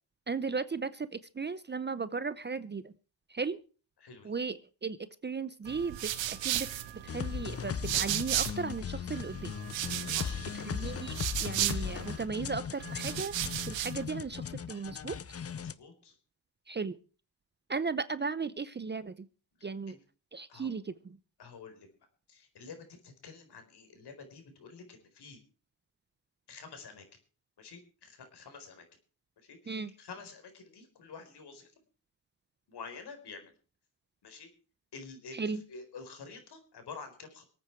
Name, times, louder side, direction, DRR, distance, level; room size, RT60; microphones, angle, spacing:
voice 1, 0.3-2.9 3.3-3.6 4.2-6.7 7.0-9.5 10.5-13.3 13.7-15.1 16.7-17.0 17.7-19.3 19.6-20.0 20.3-21.2 29.7-29.9 35.3-35.6, right 4 dB, 25° right, 15 dB, 0.7 m, -36 dB
voice 2, 4.0-4.3 10.0-10.5 15.5-16.2 19.9-20.0 20.5-20.7 21.4-21.9 22.3-25.4 26.5-27.0 27.6-28.8 29.4-31.7 32.7-33.5 34.2-34.5 34.9-37.4, left 5 dB, 60° left, 7 dB, 4.5 m, -49 dB
sound 1, 5.7-8.8 9.1-12.3 12.8-14.0, right 13 dB, 85° right, 1.4 m, -35 dB
sound 2, 7.1-15.7, left 7 dB, 35° left, 0.8 m, -38 dB
24.5 x 9.0 x 4.6 m, 0.37 s
cardioid pair, 85°, 44 cm